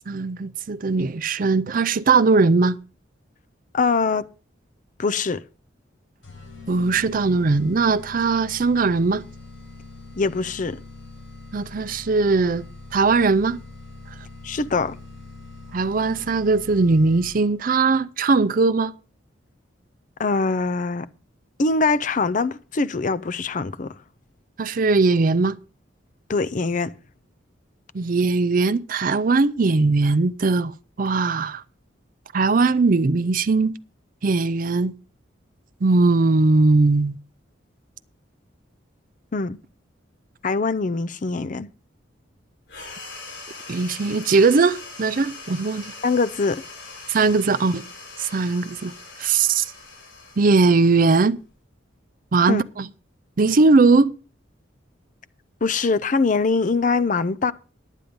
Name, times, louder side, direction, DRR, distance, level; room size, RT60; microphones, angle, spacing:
voice 1, 0.1-2.8 6.7-9.2 11.5-12.6 12.9-13.6 15.7-18.9 24.6-25.5 27.9-30.7 31.0-31.6 32.3-33.7 34.2-34.9 35.8-37.2 43.7-45.9 47.1-47.8 48.2-48.9 49.2-49.7 50.4-51.4 52.3-52.9 53.4-54.2, right 3 dB, 45° right, 0.5 m, -19 dB
voice 2, 3.7-4.3 5.0-5.4 10.2-10.8 14.4-15.0 20.2-21.1 21.6-23.9 26.3-26.9 39.3-39.6 40.4-41.7 46.0-46.6 52.5-52.6 55.6-57.5, left 4 dB, 40° left, 0.5 m, -23 dB
sound 1, 6.2-17.6, left 3 dB, 90° left, 5.7 m, -42 dB
sound 2, 42.7-51.6, left 3 dB, 65° left, 5.4 m, -41 dB
10.0 x 9.1 x 5.2 m
head